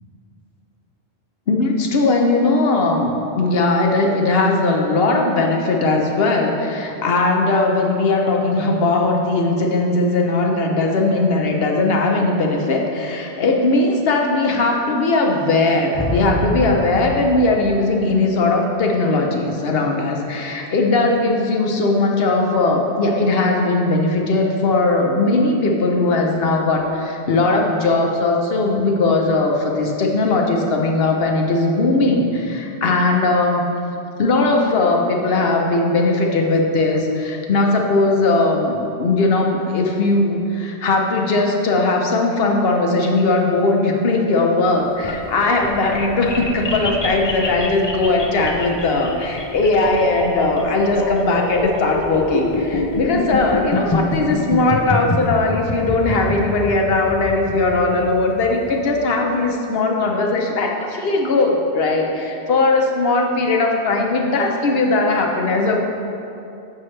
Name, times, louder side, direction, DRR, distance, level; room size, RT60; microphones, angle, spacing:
voice 1, 1.5-33.6 34.2-65.8, left 2 dB, 65° left, 1 dB, 0.9 m, -19 dB
sound 1, 15.9-18.4, left 1 dB, 5° right, 1.5 m, -27 dB
sound 2, 44.8-58.9, left 2 dB, 40° left, 0.4 m, -25 dB
7.4 x 6.6 x 3.2 m, 2.7 s
omnidirectional pair, 1.1 m